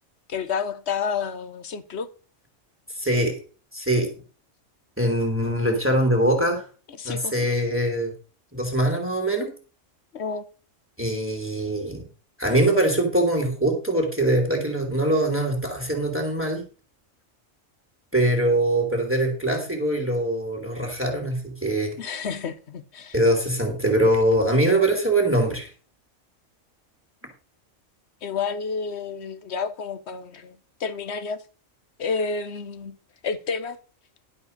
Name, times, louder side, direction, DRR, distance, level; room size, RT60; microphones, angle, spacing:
voice 1, 0.3-2.1 7.0-7.3 10.1-10.5 22.0-23.2 28.2-31.4 32.0-33.0 33.2-33.8, left 5 dB, 60° left, 1.2 m, -30 dB
voice 2, 3.0-3.4 3.7-4.1 5.0-6.7 7.0-8.1 8.5-9.5 11.0-12.1 12.4-16.6 18.1-21.9 23.1-25.7, right 1 dB, 10° right, 2.7 m, -23 dB
11.5 x 5.4 x 6.6 m
omnidirectional pair, 1.3 m